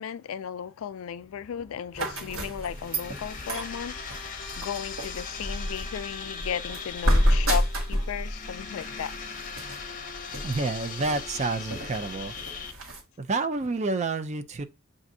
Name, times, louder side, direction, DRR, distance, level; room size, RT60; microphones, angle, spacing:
voice 1, 0.0-9.1, left 8 dB, 75° left, 0.4 m, -35 dB
sound 1, 0.6-12.2, left 2 dB, 5° right, 1.4 m, -59 dB
sound 2, 1.9-13.0, equal, 65° right, 1.4 m, -30 dB
sound 3, 2.5-12.7, left 5 dB, 40° left, 0.7 m, -40 dB
voice 2, 10.4-12.9 13.2-14.6, right 3 dB, 35° right, 0.4 m, -29 dB
7.1 x 2.5 x 2.6 m
head